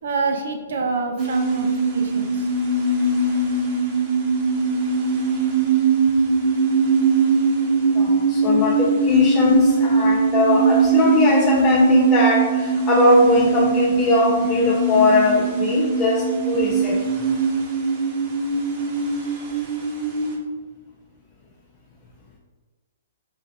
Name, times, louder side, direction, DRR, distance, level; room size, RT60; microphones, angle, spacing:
voice 1, 0.0-2.5, right 4 dB, 75° right, 3 dB, 0.6 m, -27 dB
sound 1, 1.2-20.4, right 4 dB, 40° right, 0.9 m, -21 dB
voice 2, 7.9-17.0, left 2 dB, 25° left, -2 dB, 0.5 m, -20 dB
3.8 x 2.5 x 3.9 m, 1.3 s
hypercardioid pair, 130°, 0 cm